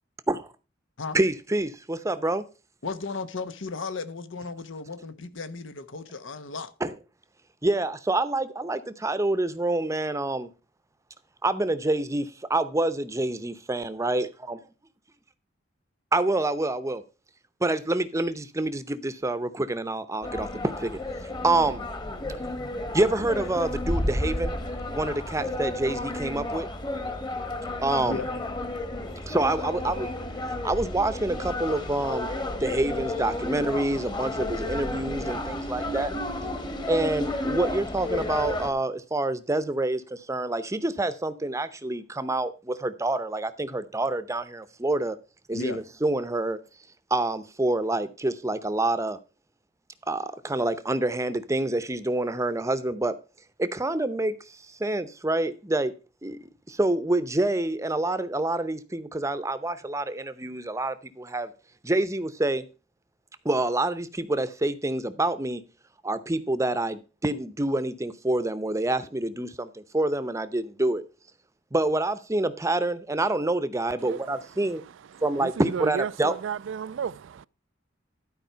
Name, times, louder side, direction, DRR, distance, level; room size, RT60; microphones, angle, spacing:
voice 1, 1.1-2.4 6.8-6.9 7.6-10.5 11.4-14.6 16.1-17.0 17.6-21.9 22.9-24.5 24.9-26.7 27.8-28.2 29.3-30.1 30.4-32.3 32.6-36.1 36.9-45.2 45.5-46.6 47.1-49.2 50.1-53.2 53.6-55.9 56.2-56.4 56.7-61.5 61.8-62.6 63.4-65.6 66.0-71.0 71.7-74.8 75.2-76.3, right 2 dB, 15° right, 0.7 m, -27 dB
voice 2, 2.8-6.7 28.0-28.3 45.5-45.8, left 3 dB, 85° left, 1.0 m, -35 dB
sound 1, 20.2-38.7, left 1 dB, 25° left, 1.3 m, -32 dB
voice 3, 74.0-77.5, right 7 dB, 75° right, 0.4 m, -34 dB
12.0 x 4.8 x 5.6 m
head